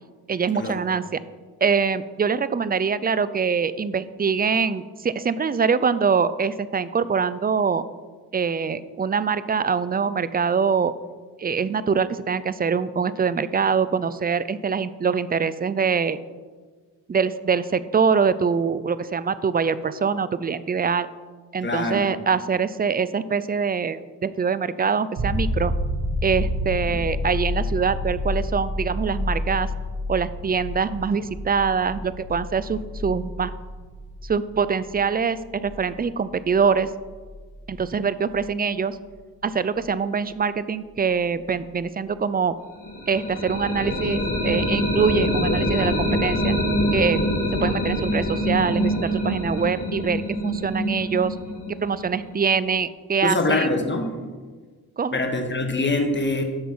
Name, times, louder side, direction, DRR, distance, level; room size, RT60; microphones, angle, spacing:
voice 1, 0.3-1.2 1.6-7.8 8.3-10.9 11.4-16.2 17.1-21.1 21.5-25.7 26.2-29.7 30.1-33.5 34.2-36.9 37.7-39.0 39.4-42.6 43.1-46.5 46.9-47.2 47.6-51.4 51.7-53.7 55.0-55.2, right 6 dB, 25° right, 15 dB, 0.5 m, -24 dB
voice 2, 21.6-22.0 26.9-27.0 53.2-54.1 55.1-56.4, left 2 dB, 25° left, 4 dB, 1.6 m, -24 dB
sound 1, 25.2-38.7 41.4-41.5, left 1 dB, 65° right, 2.1 m, -30 dB
sound 2, 42.8-52.6, equal, 55° left, 3.2 m, -25 dB
8.8 x 6.1 x 5.5 m, 1.4 s
supercardioid pair, 55°, 40 cm